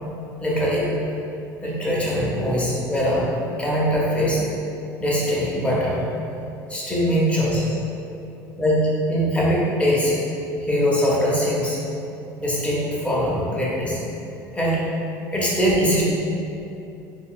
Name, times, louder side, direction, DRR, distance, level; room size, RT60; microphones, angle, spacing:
voice 1, 0.4-0.9 1.6-3.3 3.6-4.4 5.0-6.0 6.7-7.7 8.6-10.1 10.6-11.8 12.4-14.0 14.5-14.8 15.3-16.0, equal, 15° left, -6 dB, 0.8 m, -22 dB
3.4 x 2.4 x 2.3 m, 2.8 s
supercardioid pair, 95°, 8 cm